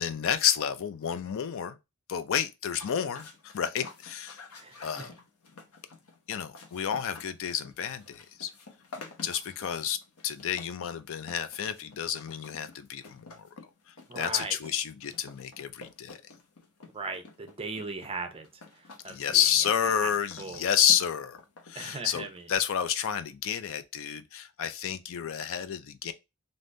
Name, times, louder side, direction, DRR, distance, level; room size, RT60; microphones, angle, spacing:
voice 1, 0.0-1.8 2.1-4.4 4.8-5.1 6.3-8.5 9.2-10.0 10.2-13.5 13.9-16.2 19.1-21.4 21.7-26.1, left 9 dB, 65° left, 0.4 m, -30 dB
sound 1, 2.8-22.6, left 3 dB, 85° left, 0.9 m, -50 dB
voice 2, 4.6-5.1 14.1-14.6 16.9-18.5 18.7-19.4 20.0-20.1 20.4-20.6 21.7-22.5, right 3 dB, 25° right, 0.7 m, -38 dB
3.5 x 2.6 x 2.5 m
head